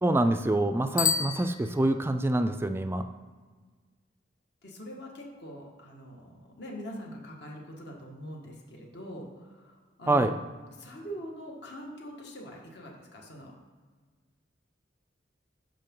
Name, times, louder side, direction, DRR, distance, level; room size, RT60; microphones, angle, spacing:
voice 1, 0.0-3.1 10.1-10.4, right 1 dB, 15° right, 8 dB, 0.3 m, -26 dB
Bicycle bell, 0.9-2.3, left 7 dB, 45° left, 0.6 m, -30 dB
voice 2, 4.6-10.3 10.8-13.5, equal, 60° left, -1 dB, 1.8 m, -43 dB
12.0 x 5.1 x 3.8 m, 1.4 s
head